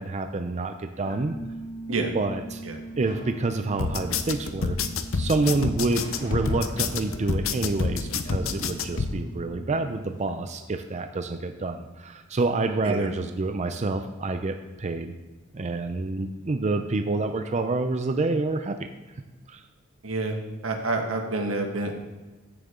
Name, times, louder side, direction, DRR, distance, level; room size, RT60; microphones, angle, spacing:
voice 1, 0.0-1.3 2.1-2.6 3.0-4.8 5.1-15.1 15.5-18.9 19.5-19.6, right 3 dB, 35° right, 7 dB, 0.5 m, -28 dB
sound 1, 1.0-10.3, right 2 dB, 15° left, 1.2 m, -42 dB
sound 2, 2.5-10.3, left 1 dB, 40° left, 2.0 m, -46 dB
sound 3, 3.8-9.1, left 4 dB, 75° left, 0.7 m, -28 dB
voice 2, 20.0-20.4 20.6-22.1, right 2 dB, 90° right, 3 dB, 1.6 m, -28 dB
15.0 x 6.6 x 3.8 m, 1.2 s
head